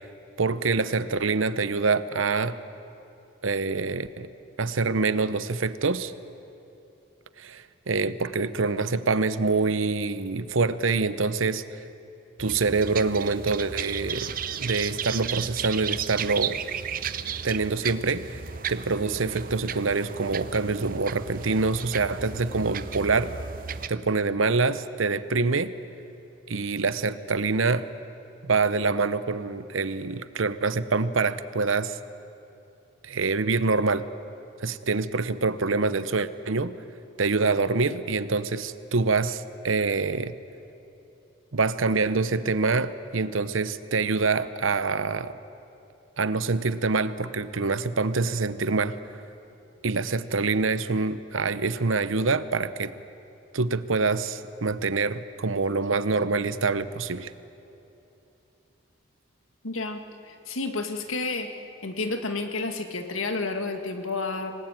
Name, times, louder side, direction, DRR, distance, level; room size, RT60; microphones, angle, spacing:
voice 1, 0.4-2.6 3.4-4.3 4.6-6.1 7.4-11.8 12.4-14.3 14.6-16.6 17.4-18.4 18.7-23.3 23.9-25.7 26.5-27.9 28.4-32.0 33.0-34.0 34.6-36.7 37.2-40.3 41.5-45.3 46.2-49.0 49.8-52.9 53.5-57.3, right 4 dB, 75° right, 14 dB, 0.9 m, -25 dB
sound 1, 12.4-23.9, right 7 dB, 45° right, 0.7 m, -34 dB
voice 2, 59.6-61.5 61.8-64.5, left 3 dB, 85° left, 6 dB, 1.9 m, -30 dB
26.5 x 19.0 x 9.0 m, 2.9 s
head